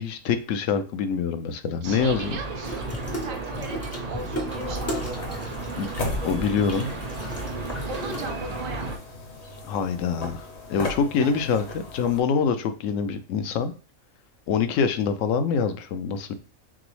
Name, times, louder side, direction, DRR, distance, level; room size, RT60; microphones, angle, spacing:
voice 1, 0.0-2.4 5.8-5.9 6.2-6.9 9.6-13.7 14.5-16.3, left 6 dB, 75° left, 9 dB, 0.9 m, -25 dB
sound 1, 1.8-9.0, right 3 dB, 45° right, 0.5 m, -34 dB
voice 2, 1.8-2.9 3.2-5.5 7.9-9.0 11.2-11.4, right 3 dB, 75° right, 4 dB, 1.0 m, -38 dB
Water tap faucet / Sink (filling or washing), 2.6-8.7, equal, 25° left, 0.3 m, -36 dB
sound 2, 4.5-12.2, left 2 dB, 55° left, 1.2 m, -37 dB
6.0 x 2.0 x 3.1 m, 0.36 s
omnidirectional pair, 1.4 m